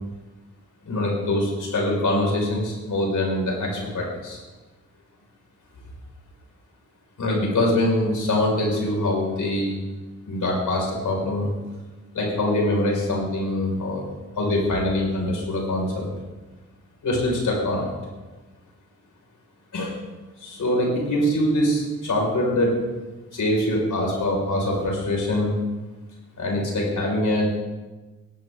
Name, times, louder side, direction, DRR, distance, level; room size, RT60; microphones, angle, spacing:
voice 1, 0.8-4.4 7.2-9.7 10.3-11.5 12.1-14.0 14.4-16.0 17.0-17.9 19.7-19.9 20.4-22.8 23.3-25.6 26.4-27.6, left 1 dB, 75° left, -1 dB, 5.7 m, -23 dB
17.5 x 14.5 x 3.9 m, 1.2 s
cardioid pair, 65°, 31 cm